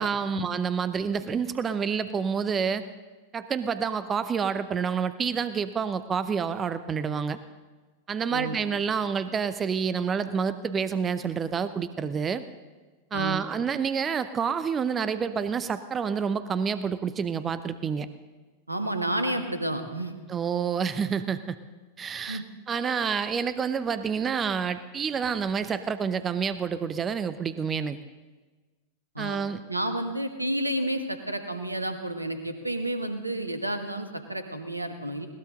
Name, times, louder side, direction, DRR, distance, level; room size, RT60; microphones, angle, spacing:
voice 1, 0.0-2.8 3.3-7.4 8.1-12.4 13.1-18.1 20.3-21.6 22.0-28.0 29.2-29.6, right 6 dB, 20° right, 13 dB, 0.7 m, -28 dB
voice 2, 8.3-8.8 13.1-13.4 18.7-20.1 22.3-22.4 29.1-29.4 29.7-35.3, right 1 dB, 85° right, 8 dB, 1.4 m, -31 dB
20.5 x 18.0 x 3.8 m, 1.3 s
figure-of-eight pair, 90°, 0 cm